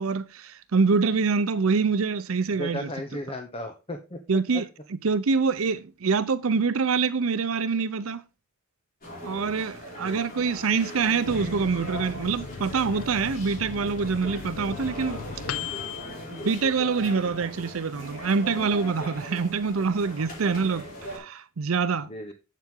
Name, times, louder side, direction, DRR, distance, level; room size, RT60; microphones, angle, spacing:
voice 1, 0.0-2.9 4.3-4.7 5.0-8.2 9.2-15.2 16.3-22.1, right 5 dB, 85° right, 0.6 m, -25 dB
voice 2, 2.6-4.2 10.0-10.2 22.0-22.3, left 1 dB, 30° left, 0.9 m, -35 dB
sound 1, 9.0-21.2, equal, 45° left, 4.7 m, -39 dB
Microwave oven, 11.2-17.3 17.7-17.8 18.1-18.7, left 7 dB, 85° left, 0.5 m, -38 dB
7.7 x 7.5 x 3.7 m
head